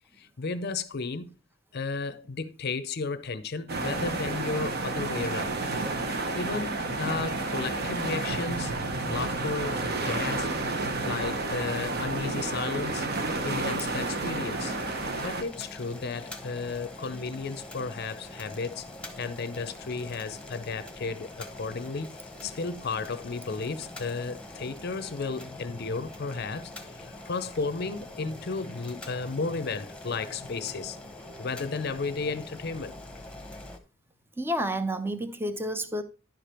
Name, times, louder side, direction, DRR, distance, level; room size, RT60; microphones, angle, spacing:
voice 1, 0.2-1.3 1.7-5.6 6.3-8.7 9.1-9.8 10.1-10.5 11.0-13.1 13.4-14.7 15.2-18.9 19.2-31.0 31.4-33.0, left 4 dB, 55° left, 0.6 m, -33 dB
sound 1, 3.7-15.4, right 2 dB, 50° right, 1.0 m, -30 dB
Boiling, 14.5-33.8, left 2 dB, 5° left, 1.0 m, -44 dB
voice 2, 34.4-36.0, right 1 dB, 10° right, 0.6 m, -30 dB
10.5 x 5.1 x 4.3 m
head